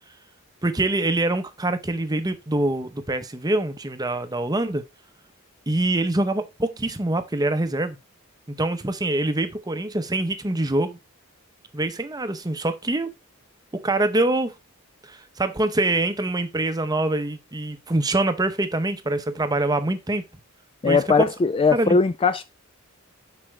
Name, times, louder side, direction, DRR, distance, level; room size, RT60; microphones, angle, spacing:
voice 1, 0.6-4.8 5.7-8.0 8.5-11.0 11.7-13.1 13.7-14.5 15.0-20.2 20.8-21.3 21.7-22.0, right 2 dB, 20° right, 0.7 m, -24 dB
voice 2, 20.8-22.4, left 4 dB, 25° left, 0.3 m, -19 dB
7.4 x 5.8 x 3.2 m
head